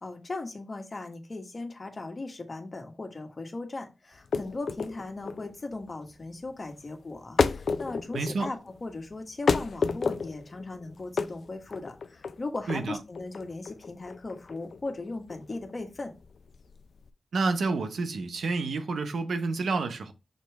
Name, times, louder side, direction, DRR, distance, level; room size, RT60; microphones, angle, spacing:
voice 1, 0.0-16.1, left 2 dB, 45° left, 1.4 m, -38 dB
sound 1, 4.1-17.1, left 5 dB, 70° left, 0.4 m, -32 dB
voice 2, 8.1-8.5 12.7-13.0 17.3-20.1, right 3 dB, 80° right, 0.8 m, -29 dB
6.6 x 3.1 x 4.7 m
cardioid pair, 50°, 0 cm